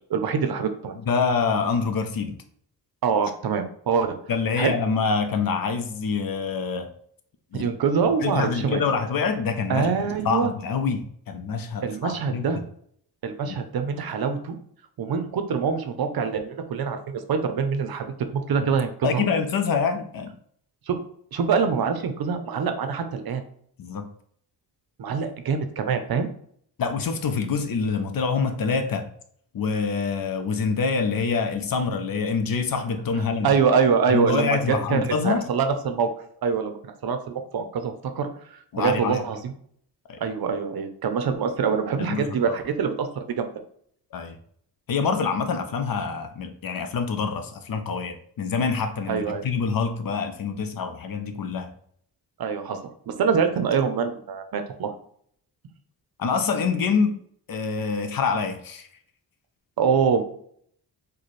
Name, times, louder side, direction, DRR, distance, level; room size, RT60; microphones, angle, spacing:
voice 1, 0.1-0.9 3.0-4.1 4.6-4.7 7.5-8.8 9.7-10.5 11.8-12.6 13.2-14.6 15.0-19.2 20.9-21.0 21.3-23.4 25.0-26.3 33.4-34.6 34.9-36.1 36.4-39.5 40.2-43.5 49.1-49.5 52.4-52.8 53.1-54.9 59.8-60.2, right 6 dB, 60° right, 8 dB, 0.6 m, -25 dB
voice 2, 1.0-2.4 4.3-6.9 7.5-7.7 8.2-9.9 10.2-12.5 13.5-13.6 19.0-20.3 23.8-24.1 26.8-29.1 29.5-33.5 34.1-35.4 38.7-39.2 40.1-40.2 42.0-42.6 44.1-44.4 44.9-51.7 56.2-57.2 57.5-58.9, left 5 dB, 55° left, 7 dB, 0.6 m, -26 dB
4.1 x 2.2 x 3.1 m, 0.64 s
cardioid pair, 95°, 42 cm